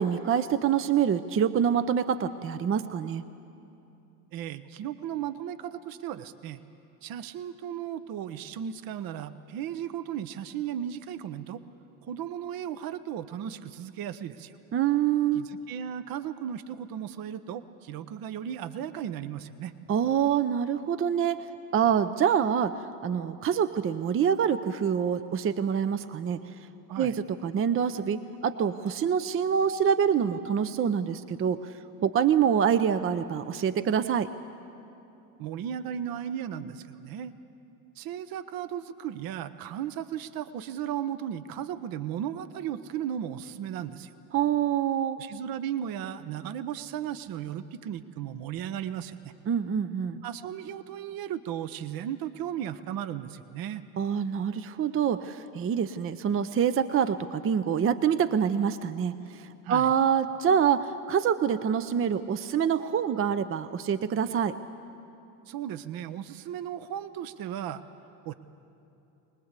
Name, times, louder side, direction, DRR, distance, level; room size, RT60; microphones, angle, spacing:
voice 1, 0.0-3.2 14.7-15.5 19.9-21.4 21.7-22.8 23.0-26.5 27.0-31.7 32.0-34.3 44.3-45.2 49.5-50.2 54.0-64.6, right 8 dB, 30° right, 12 dB, 0.7 m, -26 dB
voice 2, 4.3-6.6 7.0-11.6 12.0-14.5 15.3-19.7 26.9-27.1 35.4-37.3 38.0-44.1 45.2-49.3 50.2-53.8 59.6-59.9 65.5-67.8 68.2-68.3, right 10 dB, 50° right, 13 dB, 1.0 m, -35 dB
23.5 x 19.5 x 8.2 m, 2.8 s
hypercardioid pair, 80°, 44 cm